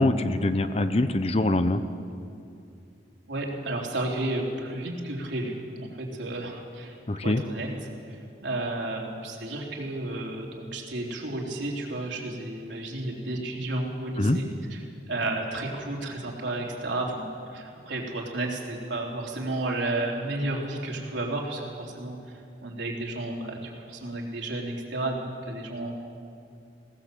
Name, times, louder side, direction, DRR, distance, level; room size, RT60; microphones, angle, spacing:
voice 1, 0.0-1.8 7.1-7.4 14.2-14.4, left 2 dB, 30° left, 10 dB, 0.7 m, -23 dB
voice 2, 3.3-7.0 7.2-7.7 8.1-14.8 15.1-25.9, right 2 dB, 75° right, -1 dB, 3.4 m, -32 dB
20.0 x 17.5 x 7.7 m, 2.5 s
head